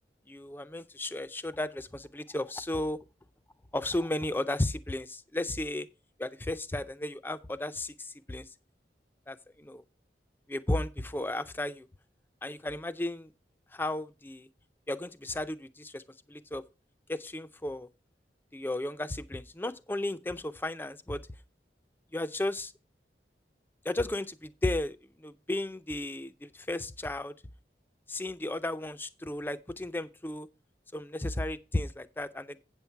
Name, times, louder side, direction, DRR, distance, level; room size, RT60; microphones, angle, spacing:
voice 1, 0.3-3.0 3.7-5.9 6.2-8.5 9.3-9.8 10.5-11.9 12.4-13.3 13.7-14.5 14.9-16.0 16.3-16.6 17.1-17.9 18.5-21.2 22.1-22.7 23.8-27.3 28.1-30.5 30.9-32.6, left 1 dB, 10° left, 0.4 m, -34 dB
8.5 x 7.2 x 4.5 m
head